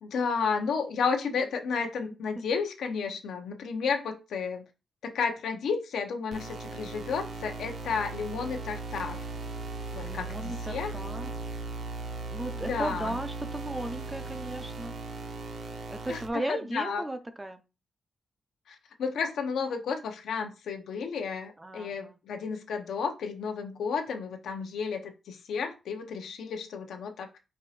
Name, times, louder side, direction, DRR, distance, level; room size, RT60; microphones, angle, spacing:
voice 1, 0.0-4.6 5.0-9.3 9.9-10.9 12.6-13.2 16.1-17.0 18.7-27.4, left 5 dB, 90° left, 5 dB, 0.8 m, -32 dB
sound 1, 6.3-16.3, right 3 dB, 50° right, 0.6 m, -38 dB
voice 2, 10.0-11.3 12.3-15.0 15.9-17.6 21.6-22.2, right 1 dB, 10° right, 9 dB, 0.4 m, -36 dB
4.6 x 2.5 x 4.1 m, 0.29 s
wide cardioid pair, 175°, 0 cm